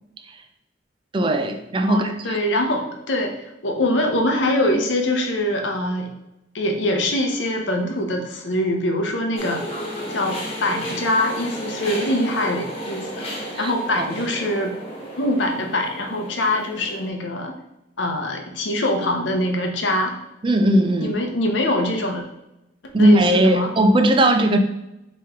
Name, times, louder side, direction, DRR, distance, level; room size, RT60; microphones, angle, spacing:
voice 1, 1.1-2.4 13.6-14.1 20.4-21.2 22.9-24.6, right 1 dB, 25° right, 7 dB, 0.4 m, -18 dB
voice 2, 1.9-6.1 6.5-9.6 10.1-13.1 13.6-14.7 15.2-17.5 18.0-20.1 21.0-22.2 23.0-23.7, left 1 dB, 75° left, 3 dB, 0.8 m, -23 dB
sound 1, 9.4-17.1, equal, 35° left, 1.2 m, -33 dB
4.5 x 3.0 x 3.5 m, 0.89 s
head